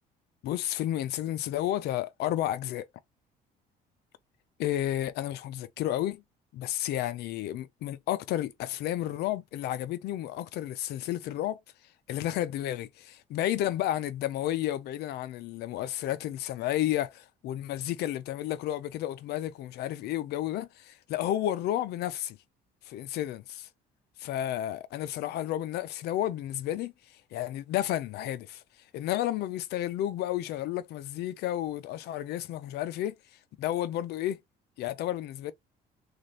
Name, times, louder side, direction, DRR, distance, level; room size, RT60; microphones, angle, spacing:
voice 1, 0.4-2.9 4.6-6.2 6.5-11.6 12.1-22.4 22.9-23.7 24.2-26.9 27.3-28.6 28.9-33.1 33.6-34.4 34.8-35.5, left 13 dB, 75° left, 0.6 m, -31 dB
3.1 x 2.5 x 4.0 m
cardioid pair, 110°, 17 cm